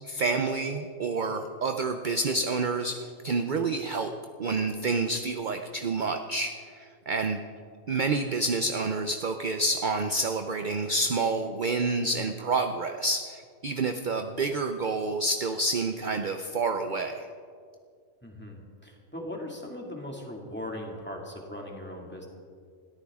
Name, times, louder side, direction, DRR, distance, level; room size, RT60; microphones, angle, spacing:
voice 1, 0.1-3.0 3.2-4.1 4.4-7.4 7.9-17.3, right 3 dB, 45° right, 6 dB, 0.7 m, -28 dB
voice 2, 18.2-22.3, left 1 dB, 5° left, -1 dB, 2.2 m, -39 dB
21.0 x 14.0 x 3.7 m, 2.2 s
omnidirectional pair, 1.5 m